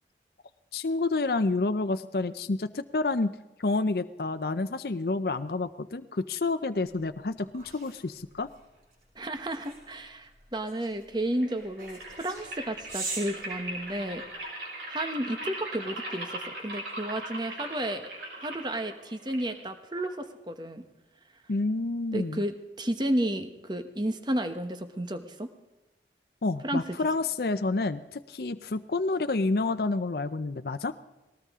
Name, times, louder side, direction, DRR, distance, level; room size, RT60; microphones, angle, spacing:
voice 1, 0.7-8.5 21.5-22.4 26.4-31.0, left 3 dB, 60° left, 10 dB, 0.6 m, -29 dB
sound 1, 7.3-14.4, right 3 dB, 55° right, 7.4 m, -43 dB
voice 2, 9.2-14.2 14.9-18.1 18.4-20.8 22.1-25.5 26.6-26.8, right 1 dB, 25° right, 8 dB, 1.1 m, -32 dB
sound 2, 11.3-20.3, right 1 dB, 75° right, 5.9 m, -40 dB
19.0 x 19.0 x 3.7 m, 1.1 s
head